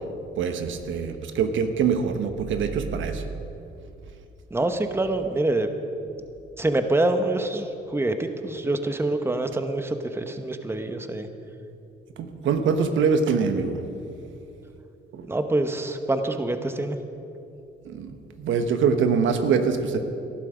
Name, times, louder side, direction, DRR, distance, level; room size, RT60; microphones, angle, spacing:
voice 1, 0.4-3.2 12.2-13.8 15.1-15.3 17.8-20.0, right 6 dB, 75° right, 7 dB, 1.2 m, -24 dB
voice 2, 4.5-5.7 6.6-11.3 15.3-17.0, right 2 dB, 10° right, 7 dB, 1.1 m, -25 dB
19.0 x 12.0 x 5.1 m, 2.7 s
cardioid pair, 90°, 20 cm